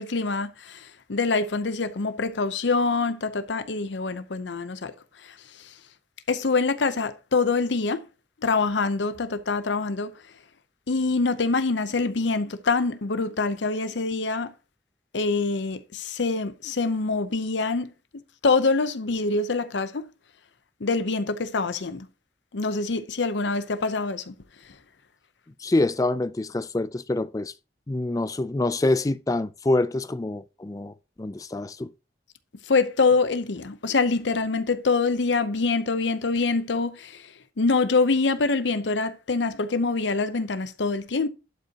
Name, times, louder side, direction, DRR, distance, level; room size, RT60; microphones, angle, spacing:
voice 1, 0.0-4.9 5.2-5.7 6.3-8.1 8.4-10.1 10.9-14.5 15.1-17.9 18.4-20.1 20.8-22.1 22.5-24.3 32.7-41.3, left 4 dB, 85° left, 0.7 m, -25 dB
voice 2, 25.6-27.5 27.9-31.9, left 2 dB, 20° left, 0.3 m, -26 dB
11.5 x 5.2 x 2.9 m
head